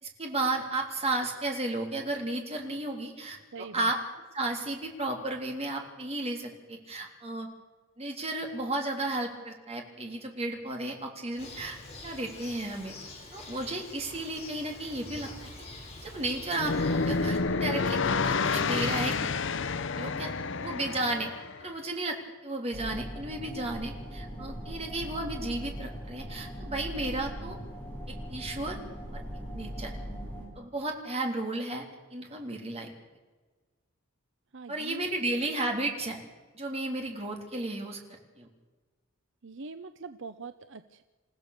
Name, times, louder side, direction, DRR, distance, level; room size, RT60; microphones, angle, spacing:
voice 1, 0.0-4.0 4.3-7.5 8.0-11.8 12.0-12.9 13.3-15.3 16.0-19.2 19.9-20.3 20.6-21.3 21.6-27.6 28.1-28.8 29.1-29.2 29.5-29.9 30.6-31.9 32.1-32.9 34.7-36.2 36.6-38.0 38.4-38.5, right 2 dB, 30° right, 2 dB, 3.5 m, -33 dB
voice 2, 3.5-3.9 34.5-35.1 39.4-41.0, right 4 dB, 60° right, 10 dB, 0.8 m, -43 dB
Bird, 11.4-17.4, left 2 dB, 30° left, 5.2 m, -46 dB
sound 1, 16.5-21.6, left 4 dB, 60° left, 0.9 m, -29 dB
sound 2, 22.7-30.5, equal, 10° left, 6.9 m, -40 dB
28.5 x 15.5 x 6.7 m, 1.3 s
head